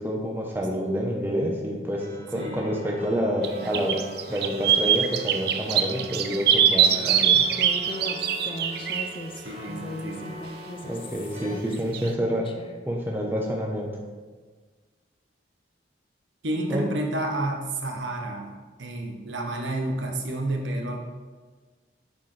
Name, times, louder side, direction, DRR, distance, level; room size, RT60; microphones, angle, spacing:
voice 1, 0.0-2.0 2.3-4.0 4.3-7.4 10.8-12.4 12.9-13.9 16.7-16.8, equal, 10° right, -1 dB, 0.8 m, -28 dB
sound 1, 2.0-11.5, equal, 35° right, 1.1 m, -43 dB
sound 2, 3.4-3.5 3.7-9.1 11.9-12.1, right 8 dB, 55° right, 0.4 m, -22 dB
voice 2, 6.9-7.3 9.4-10.3 16.4-21.0, right 1 dB, 80° right, 1 dB, 1.0 m, -30 dB
Human voice, 7.5-12.7, left 1 dB, 25° left, 0.4 m, -38 dB
9.4 x 4.3 x 3.3 m, 1.4 s
head